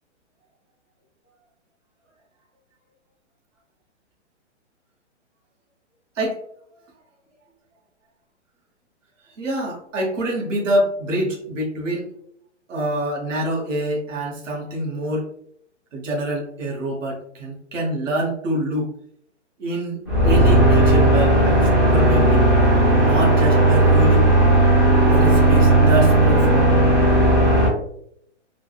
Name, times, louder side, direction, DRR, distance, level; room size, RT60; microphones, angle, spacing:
voice 1, 9.4-12.1 12.7-15.3 15.9-18.9 19.6-22.5 22.9-24.3 25.1-26.7, right 1 dB, 90° right, -1 dB, 1.0 m, -26 dB
sound 1, 20.1-27.7, right 1 dB, 20° right, 0.5 m, -15 dB
3.4 x 2.0 x 2.2 m, 0.69 s
hypercardioid pair, 170°, 36 cm